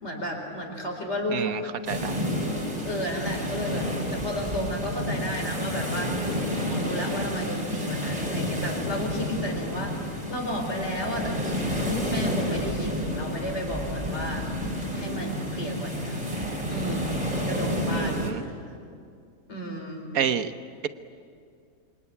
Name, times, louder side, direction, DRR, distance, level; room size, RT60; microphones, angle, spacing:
voice 1, 0.0-2.0 2.8-6.1 6.5-14.5 14.9-16.2 16.7-18.2 18.6-18.8 19.5-20.1, equal, 45° left, 2 dB, 4.8 m, -33 dB
sound 1, 1.8-18.3, equal, 25° right, 4.2 m, -30 dB
voice 2, 1.9-2.3 17.9-18.4 20.1-20.5, right 8 dB, 70° right, 11 dB, 1.4 m, -28 dB
27.5 x 25.0 x 8.5 m, 2.3 s
omnidirectional pair, 1.6 m